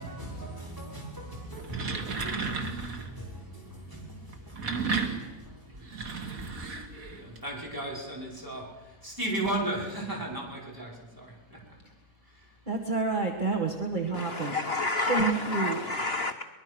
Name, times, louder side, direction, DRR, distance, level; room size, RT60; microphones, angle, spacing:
voice 1, 0.0-6.5 7.1-11.6 12.3-12.5, right 1 dB, 15° right, 5.4 m, -37 dB
sound 1, 1.5-3.2 4.3-7.4, right 4 dB, 75° right, 2.3 m, -33 dB
voice 2, 12.7-14.6 15.1-15.8, right 4 dB, 35° right, 1.9 m, -29 dB
voice 3, 14.2-16.4, left 2 dB, 50° left, 1.0 m, -30 dB
23.5 x 21.5 x 6.2 m
omnidirectional pair, 1.5 m